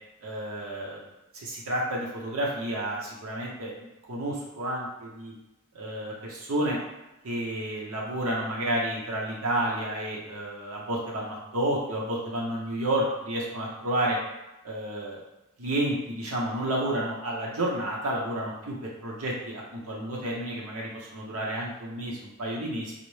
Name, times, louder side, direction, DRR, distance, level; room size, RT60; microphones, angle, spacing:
voice 1, 0.2-1.0 1.3-3.7 4.1-5.3 5.7-6.8 7.2-14.2 14.6-15.2 15.6-22.9, right 1 dB, 75° right, -3 dB, 0.8 m, -30 dB
4.0 x 2.0 x 3.1 m, 0.99 s
head